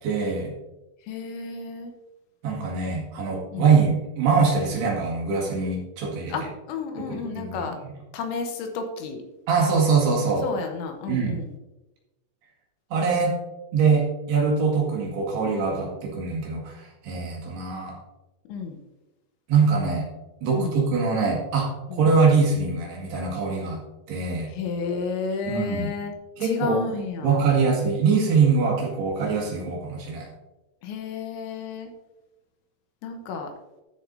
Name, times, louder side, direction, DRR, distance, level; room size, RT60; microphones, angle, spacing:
voice 1, 0.0-0.5 2.4-6.4 7.0-7.7 9.5-10.4 11.1-11.4 12.9-13.3 13.7-18.0 19.5-20.1 20.4-23.8 24.1-24.5 25.5-25.9 26.4-26.8 27.2-30.3, right 5 dB, 65° right, -2 dB, 3.7 m, -23 dB
voice 2, 1.0-1.9 3.5-3.7 6.3-7.8 8.1-9.2 10.4-11.5 18.5-18.8 20.5-20.8 21.9-22.0 24.5-26.1 26.4-27.4 30.8-31.9 33.0-33.5, left 4 dB, 80° left, 4 dB, 3.1 m, -31 dB
13.0 x 7.3 x 2.7 m, 1.0 s
omnidirectional pair, 5.5 m